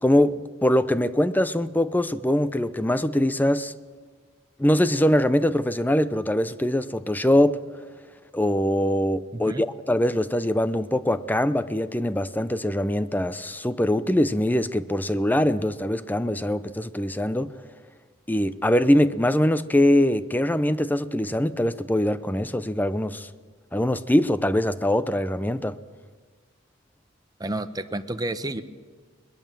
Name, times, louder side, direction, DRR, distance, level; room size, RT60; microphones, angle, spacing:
voice 1, 0.0-3.7 4.6-7.6 8.3-17.5 18.3-23.3 23.7-25.8, left 1 dB, 10° left, 0.6 m, -23 dB
voice 2, 27.4-28.6, right 1 dB, 20° right, 0.9 m, -30 dB
22.0 x 20.0 x 7.6 m
head